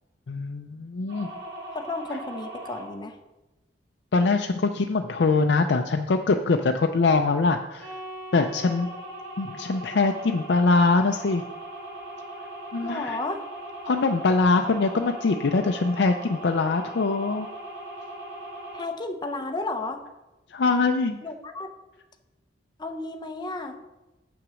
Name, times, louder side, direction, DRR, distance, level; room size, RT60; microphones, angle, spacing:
voice 1, 0.3-1.3 4.1-7.9 8.3-8.9 9.4-11.4 12.7-13.2 13.9-17.5 20.5-21.2, left 3 dB, 65° left, 5 dB, 0.5 m, -23 dB
sound 1, 1.1-2.9 7.8-18.9, right 1 dB, 75° right, 3.1 m, -39 dB
voice 2, 1.7-3.2 12.8-13.4 18.7-20.0 21.2-21.7 22.8-23.8, left 2 dB, 25° left, 6 dB, 0.7 m, -33 dB
7.9 x 6.0 x 6.2 m, 1.1 s
head